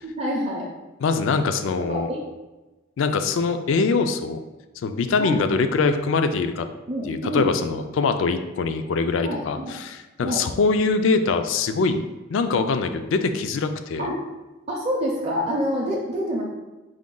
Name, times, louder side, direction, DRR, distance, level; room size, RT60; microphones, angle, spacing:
voice 1, 0.0-0.7 1.9-2.3 5.2-5.4 6.9-7.5 9.2-9.7 10.2-10.4 14.0-14.1 14.7-16.4, equal, 30° right, -5 dB, 0.5 m, -27 dB
voice 2, 1.0-2.1 3.0-4.4 4.8-6.7 7.1-12.0 12.3-14.1, left 4 dB, 75° left, 8 dB, 0.3 m, -23 dB
4.8 x 2.2 x 3.7 m, 1.1 s
head